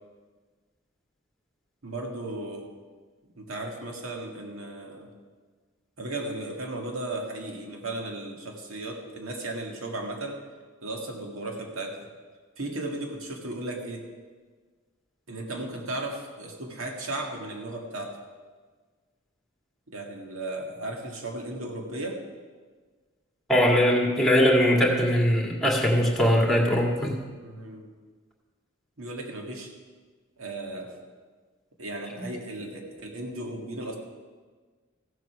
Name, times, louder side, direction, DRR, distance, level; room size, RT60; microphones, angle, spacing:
voice 1, 1.8-2.7 3.4-5.1 6.0-10.4 10.8-12.1 12.6-14.1 15.3-18.2 19.9-22.2 27.4-27.9 29.0-29.7 30.4-30.9 31.8-34.0, right 2 dB, 90° right, 1 dB, 1.9 m, -35 dB
voice 2, 23.5-27.2 32.2-32.3, equal, ahead, -1 dB, 2.0 m, -21 dB
15.0 x 7.9 x 5.8 m, 1.5 s
head